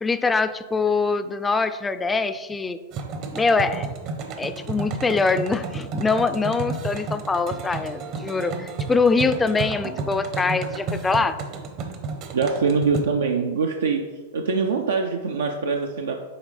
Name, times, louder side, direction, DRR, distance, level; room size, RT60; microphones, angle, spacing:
voice 1, 0.0-2.8 3.3-3.9 4.4-11.4, left 4 dB, 15° left, 10 dB, 0.4 m, -23 dB
sound 1, 2.9-13.0, right 4 dB, 45° right, 0.8 m, -32 dB
voice 2, 12.3-14.0 14.3-16.2, right 4 dB, 80° right, 3 dB, 0.5 m, -23 dB
8.7 x 3.3 x 3.3 m, 1.3 s
hypercardioid pair, 105°, 0 cm